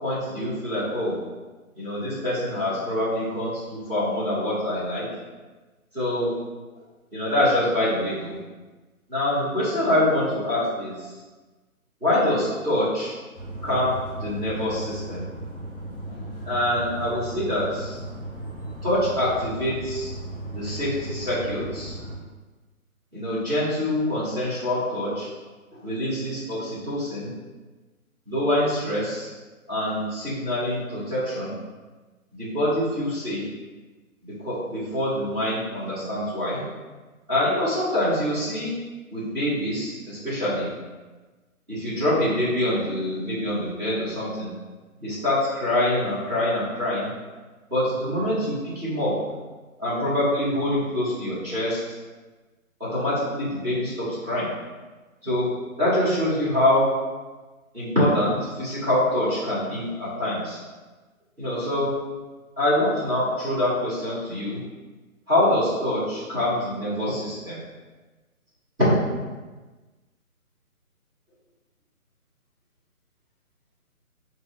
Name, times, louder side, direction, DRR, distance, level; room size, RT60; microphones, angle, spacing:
voice 1, 0.0-1.1 1.7-5.0 5.9-6.3 7.1-8.4 9.1-10.9 12.0-13.1 13.6-15.2 16.1-16.2 16.4-18.0 18.8-20.1 20.5-21.9 23.1-25.3 25.8-27.3 28.2-29.3 29.7-31.5 32.3-33.4 34.4-36.6 37.3-38.7 39.1-40.7 41.7-44.5 45.0-47.1 47.7-49.1 49.8-51.8 52.8-54.5 55.2-55.5 55.8-56.9 57.7-60.6 61.4-61.9 62.6-64.6 65.3-67.6, left 1 dB, 5° right, -26 dB, 1.1 m, -25 dB
sound 1, 13.3-22.2, right 1 dB, 20° left, 1.5 m, -36 dB
5.3 x 2.8 x 2.5 m, 1.3 s
hypercardioid pair, 175°, 43 cm